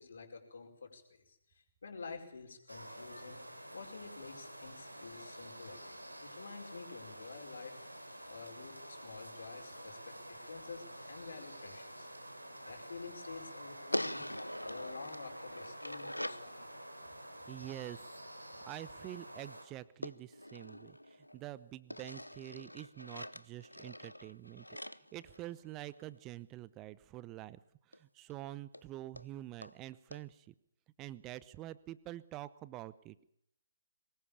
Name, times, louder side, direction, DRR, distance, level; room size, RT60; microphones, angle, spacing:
voice 1, 0.0-3.4 3.7-7.8 8.3-12.1 12.6-14.3 14.6-16.7, left 4 dB, 55° left, 4 dB, 5.0 m, -49 dB
sound 1, 2.7-19.7, right 1 dB, 85° right, 3.8 m, -49 dB
sound 2, 13.9-16.5 20.0-21.4 21.9-26.0 27.9-28.0 28.3-28.4 28.7-28.8 29.2-29.3 29.6-29.7 30.1-30.2, left 1 dB, 85° left, 0.8 m, -43 dB
voice 2, 17.5-18.2 18.6-27.6 27.9-30.5 31.0-33.3, right 15 dB, 20° right, 18 dB, 0.8 m, -47 dB
23.5 x 20.5 x 7.1 m, 0.75 s
figure-of-eight pair, 135°, 0 cm